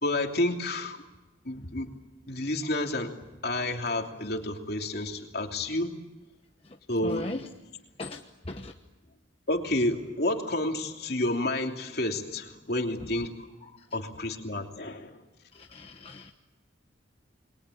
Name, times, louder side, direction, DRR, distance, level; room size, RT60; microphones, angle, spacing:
voice 1, 0.0-1.0 1.4-1.9 2.3-3.1 3.4-5.9 6.9-7.3 9.5-13.5 13.9-15.2, left 1 dB, 55° left, 3 dB, 3.1 m, -30 dB
voice 2, 6.6-7.5 8.0-8.7 13.6-14.0 15.5-16.3, left 2 dB, 30° left, 3 dB, 1.1 m, -39 dB
29.5 x 22.5 x 8.6 m, 1.1 s
head